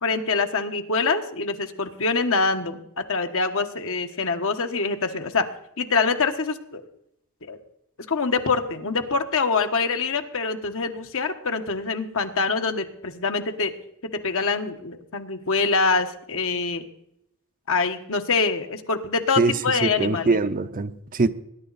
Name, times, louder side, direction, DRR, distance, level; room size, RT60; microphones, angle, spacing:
voice 1, 0.0-5.4 5.8-6.8 7.5-7.6 8.1-13.7 14.2-16.8 17.7-20.4, left 4 dB, 65° left, 6 dB, 1.3 m, -25 dB
voice 2, 19.4-21.3, right 3 dB, 40° right, 11 dB, 0.7 m, -23 dB
20.0 x 10.5 x 4.1 m, 0.79 s
head